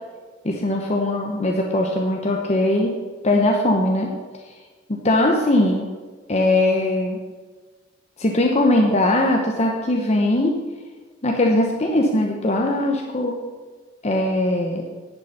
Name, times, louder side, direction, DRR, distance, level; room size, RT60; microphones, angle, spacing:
voice 1, 0.4-2.9 3.2-4.1 4.4-4.5 4.9-5.9 6.3-7.2 8.2-10.6 11.2-13.4 14.0-14.8, left 1 dB, 35° left, 1 dB, 0.9 m, -20 dB
10.5 x 6.7 x 5.8 m, 1.4 s
head